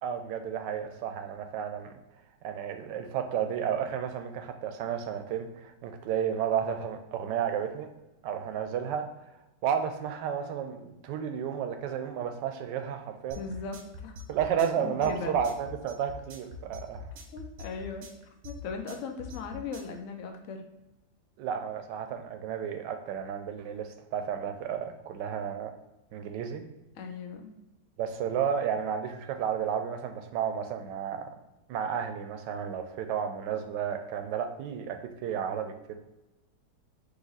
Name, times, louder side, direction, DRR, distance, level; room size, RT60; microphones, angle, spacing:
voice 1, 0.0-2.0 2.4-7.9 8.2-9.1 9.6-13.4 14.3-17.1 21.4-25.7 26.1-26.6 28.0-31.4 31.7-36.0, right 8 dB, 85° right, 7 dB, 1.2 m, -32 dB
sound 1, 13.3-20.0, left 3 dB, 55° right, 0.9 m, -43 dB
voice 2, 13.4-13.8 14.0-14.1 14.8-15.4 17.3-18.1 18.4-20.6 27.0-27.5, left 5 dB, 65° left, 4 dB, 0.8 m, -38 dB
4.0 x 2.8 x 3.9 m, 0.97 s
omnidirectional pair, 1.9 m